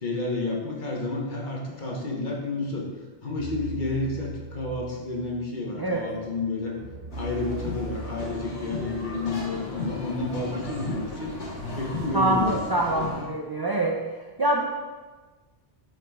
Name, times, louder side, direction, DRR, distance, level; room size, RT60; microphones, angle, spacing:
voice 1, 0.0-2.9 3.2-6.8 7.2-11.3 11.7-12.7 12.9-13.1, left 2 dB, 45° left, -2 dB, 1.1 m, -30 dB
sound 1, 3.4-12.5, right 1 dB, 75° right, 1.6 m, -41 dB
sound 2, 7.1-13.2, left 3 dB, 80° left, 1.7 m, -36 dB
voice 2, 12.1-14.0 14.4-14.6, right 1 dB, 40° right, -1 dB, 0.3 m, -24 dB
8.8 x 4.8 x 2.3 m, 1.3 s
omnidirectional pair, 1.2 m